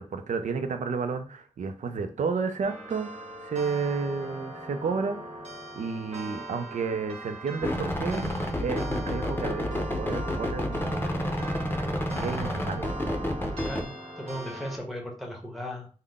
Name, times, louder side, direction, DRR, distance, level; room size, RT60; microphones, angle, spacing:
voice 1, 0.0-5.4 5.7-11.2 12.1-12.9, right 5 dB, 80° right, 8 dB, 0.5 m, -32 dB
sound 1, 2.6-14.8, right 1 dB, 55° right, 1.4 m, -40 dB
sound 2, 7.6-13.8, left 1 dB, 15° left, 0.7 m, -30 dB
voice 2, 13.6-15.9, equal, ahead, 0 dB, 1.0 m, -37 dB
3.7 x 2.1 x 3.5 m, 0.40 s
cardioid pair, 70°, 13 cm